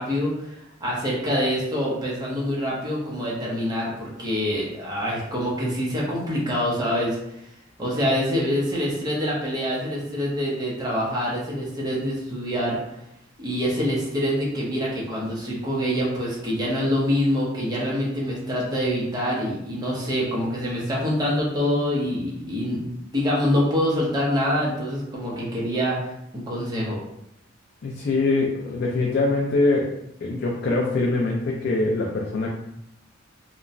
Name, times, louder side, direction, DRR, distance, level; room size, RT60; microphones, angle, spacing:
voice 1, 0.0-7.2 7.8-12.8 13.4-26.0 26.3-27.0, equal, 20° right, -5 dB, 0.7 m, -25 dB
voice 2, 27.8-29.9 30.2-32.5, left 2 dB, 55° left, -2 dB, 0.4 m, -23 dB
2.9 x 2.1 x 2.5 m, 0.80 s
head